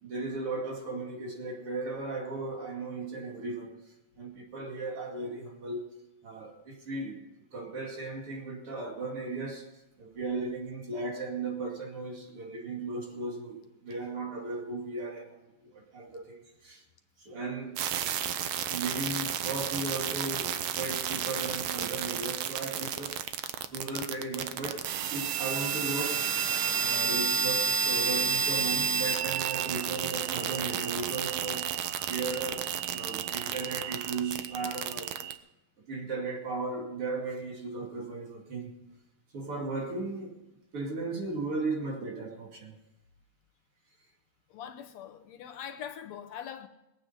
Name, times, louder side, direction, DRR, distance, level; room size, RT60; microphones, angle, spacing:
voice 1, 0.0-3.8 4.2-5.9 6.2-7.2 7.5-9.7 10.0-13.6 13.8-16.8 17.2-18.4 18.7-23.2 23.7-26.3 26.8-31.7 32.1-35.2 35.9-38.7 39.3-40.4 40.7-42.8, right 3 dB, 50° right, 3.2 m, -36 dB
sound 1, 17.8-35.3, right 7 dB, 85° right, 1.1 m, -31 dB
voice 2, 44.5-46.7, left 9 dB, 70° left, 2.0 m, -42 dB
21.0 x 8.8 x 5.6 m
omnidirectional pair, 3.3 m